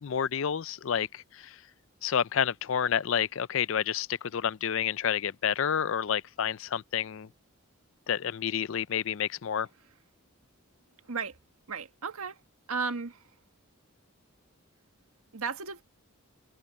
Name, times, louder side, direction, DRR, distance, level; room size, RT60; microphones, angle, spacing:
voice 1, 0.0-1.6 2.0-7.3 8.1-9.7, left 8 dB, 60° left, 0.4 m, -29 dB
voice 2, 11.7-12.4 12.7-13.2 15.3-15.8, right 5 dB, 85° right, 1.6 m, -34 dB
head